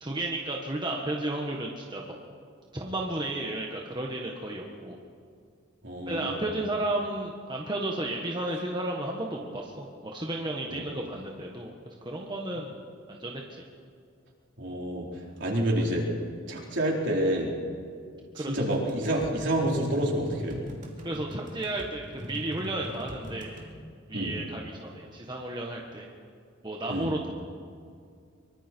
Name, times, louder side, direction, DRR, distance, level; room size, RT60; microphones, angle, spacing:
voice 1, 0.0-2.1 2.7-5.0 6.0-12.8 13.1-13.6 18.3-18.5 21.0-23.6 24.1-26.1 26.6-27.3, right 1 dB, 20° right, -1 dB, 1.6 m, -33 dB
voice 2, 5.8-6.5 10.7-10.8 14.6-15.1 15.4-16.0 16.5-17.5 18.4-20.6 24.1-24.3 26.9-27.1, right 1 dB, 60° right, -2 dB, 4.4 m, -28 dB
sound 1, 18.6-23.7, equal, 40° right, 2.7 m, -41 dB
24.5 x 24.0 x 4.6 m, 2.3 s
head